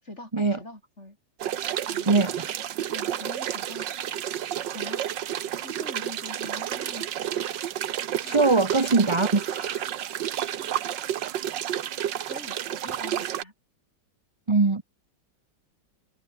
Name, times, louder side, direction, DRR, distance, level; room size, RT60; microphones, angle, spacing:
voice 1, 0.0-1.2 1.9-2.1 2.9-3.9 4.7-5.1 5.6-7.2 8.2-8.6 10.6-10.8 12.3-13.5, left 1 dB, 35° left, 7.9 m, -43 dB
sound 1, 1.4-13.4, right 11 dB, 80° right, 1.7 m, -31 dB
voice 2, 2.1-2.5 8.2-9.9 14.5-14.8, right 3 dB, 25° right, 0.7 m, -22 dB
omnidirectional pair, 2.0 m